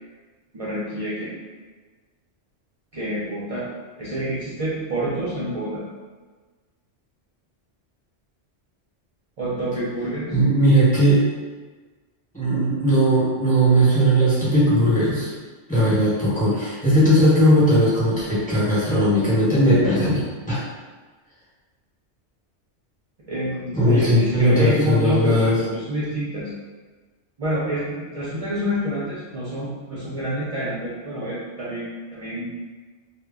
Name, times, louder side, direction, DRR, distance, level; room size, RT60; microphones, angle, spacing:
voice 1, 0.5-1.4 2.9-3.7 4.0-5.8 9.4-10.4 23.3-26.5 27.4-31.9 32.1-32.5, right 1 dB, 60° right, -9 dB, 0.3 m, -27 dB
voice 2, 10.3-11.2 12.3-15.3 15.7-20.6 23.8-25.5, equal, 10° left, -10 dB, 0.8 m, -18 dB
2.1 x 2.0 x 3.4 m, 1.4 s
omnidirectional pair, 1.2 m